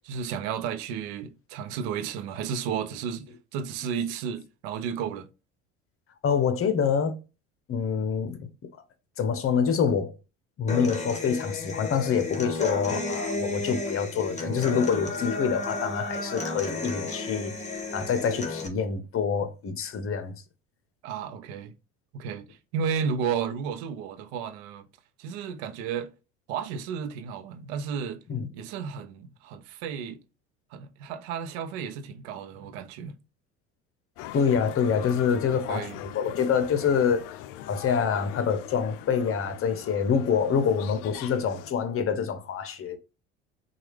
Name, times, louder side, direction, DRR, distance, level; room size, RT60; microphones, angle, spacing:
voice 1, 0.0-5.3 21.0-21.7 22.1-24.9 25.2-26.1 26.5-28.2 28.5-30.2 30.7-33.2 35.7-36.0, right 7 dB, 70° right, 0.8 m, -33 dB
voice 2, 6.2-7.2 7.7-8.5 9.2-10.1 10.6-20.3 28.3-28.5 34.3-37.3 37.7-43.0, left 6 dB, 40° left, 0.9 m, -26 dB
Human voice / Acoustic guitar, 10.7-18.7, left 2 dB, 20° left, 1.5 m, -33 dB
sound 1, 34.2-41.7, left 13 dB, 65° left, 0.5 m, -42 dB
6.0 x 2.5 x 3.3 m
hypercardioid pair, 70°, 34 cm